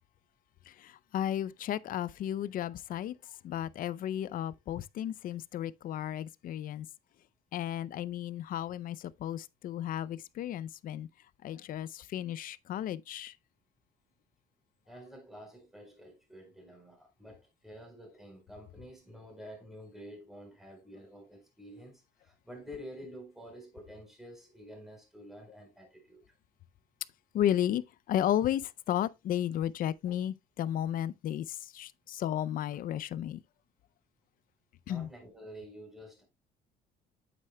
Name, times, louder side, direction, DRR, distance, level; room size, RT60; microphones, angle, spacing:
voice 1, 0.7-6.9 7.5-11.1 11.4-13.3 27.3-33.4 34.9-35.1, left 11 dB, 55° left, 0.5 m, -33 dB
voice 2, 14.9-26.2 34.9-36.2, equal, ahead, 4.2 m, -49 dB
8.5 x 8.3 x 2.2 m
cardioid pair, 110°, 17 cm